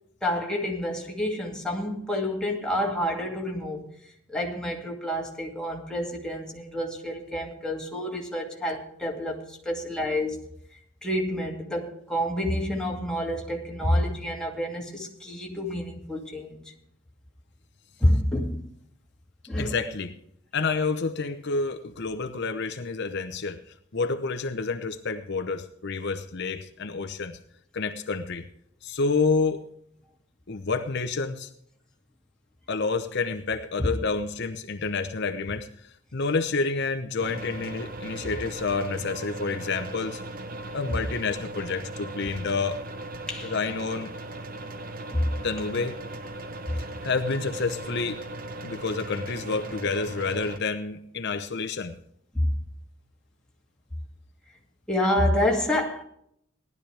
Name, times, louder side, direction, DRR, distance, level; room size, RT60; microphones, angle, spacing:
voice 1, 0.2-3.9 4.3-10.4 11.0-16.7 18.0-18.7 19.5-19.8 43.3-43.5 45.1-45.3 52.3-52.5 54.9-56.0, left 1 dB, 5° left, 2.4 m, -28 dB
voice 2, 19.6-20.2 20.5-27.4 27.7-28.5 28.8-29.6 30.5-31.5 32.7-40.2 40.7-42.8 43.4-44.1 45.4-46.0 47.0-48.2 48.6-52.0, left 4 dB, 55° left, 0.8 m, -29 dB
sound 1, 37.2-50.6, right 2 dB, 45° right, 1.0 m, -38 dB
18.5 x 12.0 x 3.4 m
head